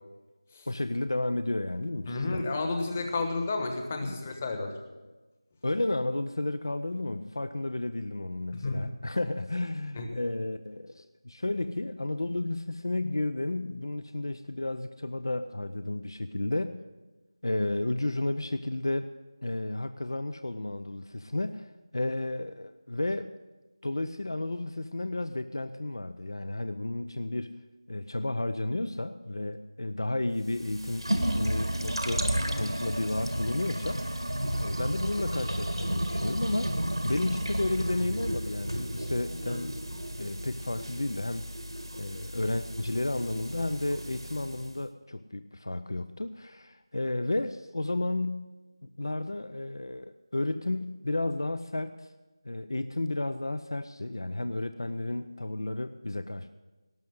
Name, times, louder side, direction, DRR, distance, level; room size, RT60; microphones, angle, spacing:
voice 1, 0.7-2.5 4.0-4.2 5.6-16.8 17.4-19.1 19.4-23.3 23.8-27.5 27.9-32.3 32.5-36.7 37.0-39.7 40.2-41.5 41.9-48.5 48.8-52.1 52.4-56.6, left 2 dB, 55° left, 11 dB, 0.6 m, -32 dB
voice 2, 2.1-4.7 8.5-8.9 9.9-10.1, left 3 dB, 20° left, 4 dB, 1.2 m, -31 dB
sound 1, 30.4-44.7, right 1 dB, 80° right, 1.9 m, -33 dB
17.5 x 6.3 x 8.0 m, 1.2 s
figure-of-eight pair, 170°, 3 cm